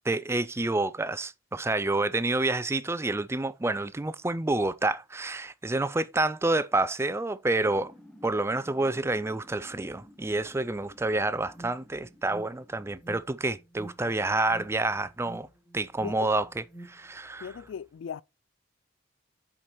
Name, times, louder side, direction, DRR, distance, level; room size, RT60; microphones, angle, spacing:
voice 1, 0.1-7.9 8.2-15.5 15.7-17.5, right 2 dB, 15° right, 0.4 m, -28 dB
sound 1, 7.6-13.2, left 1 dB, 5° left, 1.0 m, -54 dB
Alarm, 11.5-17.1, right 1 dB, 25° left, 3.3 m, -49 dB
voice 2, 17.4-18.2, left 7 dB, 75° left, 0.3 m, -38 dB
7.5 x 5.0 x 4.2 m
head